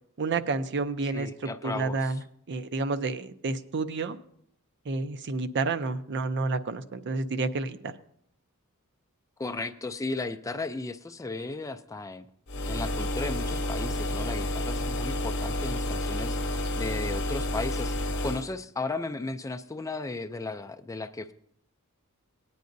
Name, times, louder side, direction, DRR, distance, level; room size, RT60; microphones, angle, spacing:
voice 1, 0.2-1.3 1.6-2.2 2.5-4.2 4.9-7.9, right 3 dB, 55° right, 10 dB, 0.6 m, -30 dB
voice 2, 1.1-2.2 9.4-12.3 12.7-21.3, left 3 dB, 15° left, 9 dB, 0.4 m, -35 dB
sound 1, 12.5-18.5, left 1 dB, 55° left, 0.8 m, -30 dB
17.5 x 9.4 x 2.6 m, 0.67 s
head